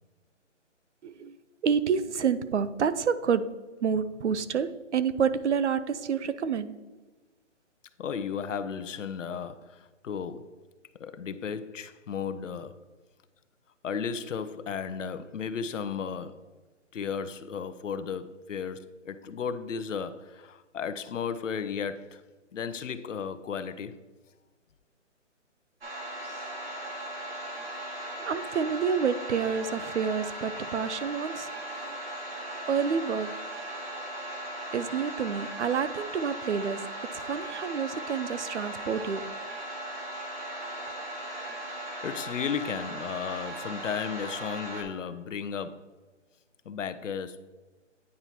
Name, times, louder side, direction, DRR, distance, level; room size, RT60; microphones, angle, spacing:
voice 1, 1.0-1.4 1.6-3.5 3.8-6.8 28.3-31.5 31.8-32.0 32.7-33.3 34.7-36.8 37.1-39.2, right 6 dB, 65° right, 0.5 m, -28 dB
voice 2, 8.0-10.6 10.9-12.9 13.8-16.5 16.9-22.2 22.5-24.0 42.0-45.9 46.7-47.5, left 6 dB, 80° left, 0.6 m, -34 dB
sound 1, 25.8-44.8, right 1 dB, 50° right, 1.8 m, -38 dB
9.5 x 4.4 x 2.8 m
hypercardioid pair, 170°, 37 cm